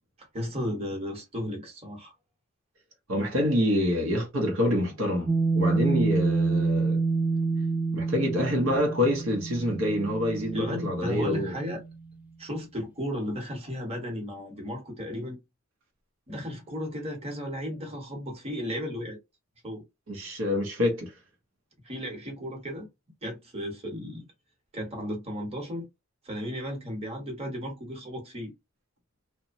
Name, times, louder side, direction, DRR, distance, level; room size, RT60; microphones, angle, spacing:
voice 1, 0.3-2.1 10.5-11.8 12.4-15.4 16.3-19.2 19.6-19.8 21.8-22.9 23.2-24.3 24.7-25.9 26.2-28.5, equal, 30° right, 1.1 m, -34 dB
voice 2, 3.1-7.0 7.9-11.6 20.1-21.1, left 1 dB, 70° right, 0.8 m, -26 dB
sound 1, 5.3-12.0, right 4 dB, 10° right, 0.3 m, -28 dB
2.9 x 2.1 x 2.5 m
head